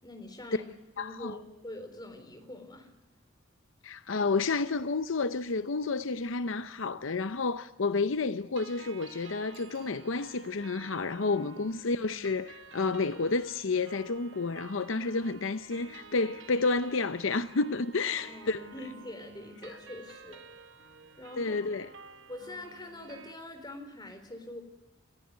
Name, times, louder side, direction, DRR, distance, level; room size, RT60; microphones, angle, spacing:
voice 1, 0.0-2.9 11.4-11.7 18.1-20.4 21.2-21.8 22.3-24.6, left 1 dB, 20° left, 3.9 m, -44 dB
voice 2, 1.0-1.4 3.8-18.6 21.4-21.9, left 3 dB, 70° left, 0.7 m, -30 dB
sound 1, 8.6-23.3, right 4 dB, 65° right, 1.3 m, -51 dB
Bicycle bell, 9.5-10.7 16.1-16.2, right 8 dB, 45° right, 5.1 m, -62 dB
28.0 x 15.5 x 9.5 m
head